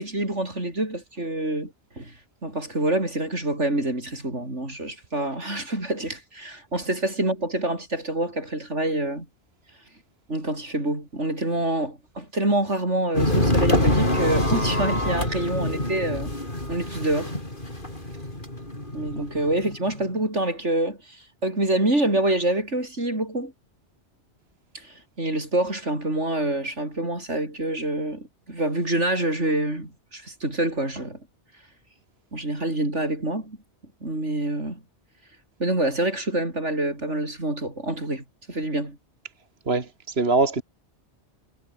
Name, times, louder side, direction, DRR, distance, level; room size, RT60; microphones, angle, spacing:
voice 1, 0.0-2.1 2.4-9.3 10.3-16.3 16.7-17.4 18.9-23.5 24.7-31.2 32.3-33.6 34.0-34.8 35.6-39.0, right 1 dB, 90° right, 7.6 m, -26 dB
sound 1, 13.1-20.0, left 1 dB, 45° left, 6.9 m, -25 dB
voice 2, 39.7-40.6, right 3 dB, 60° right, 2.5 m, -23 dB
omnidirectional pair, 1.2 m